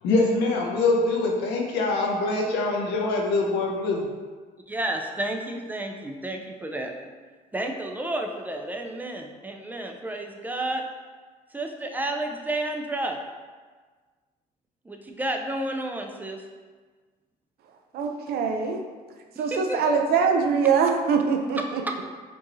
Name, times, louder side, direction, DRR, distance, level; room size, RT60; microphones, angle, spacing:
voice 1, 0.0-4.1, left 3 dB, 90° left, 0 dB, 0.7 m, -24 dB
voice 2, 4.7-6.9 7.5-10.8 11.5-13.2 14.8-16.4 19.4-19.8 21.6-22.0, right 1 dB, 10° right, 3 dB, 0.4 m, -31 dB
voice 3, 17.9-18.8 19.4-21.6, right 5 dB, 65° right, 3 dB, 0.5 m, -23 dB
4.4 x 2.7 x 3.0 m, 1.4 s
cardioid pair, 110°, 17 cm